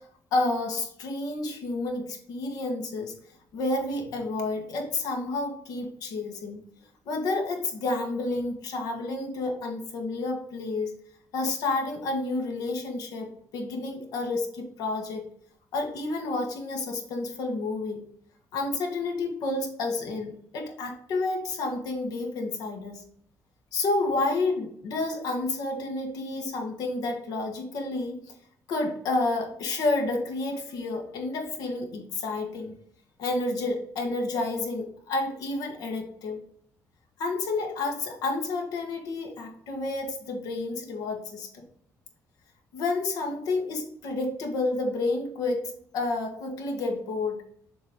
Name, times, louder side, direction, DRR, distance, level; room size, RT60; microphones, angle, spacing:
voice 1, 0.3-3.1 3.5-6.6 7.1-10.9 11.3-15.2 15.7-18.0 18.5-23.0 23.7-28.2 28.7-32.7 33.2-36.4 37.2-41.6 42.7-47.4, left 2 dB, 90° left, 2 dB, 1.4 m, -30 dB
7.2 x 3.0 x 5.0 m, 0.65 s
cardioid pair, 150°, 6 cm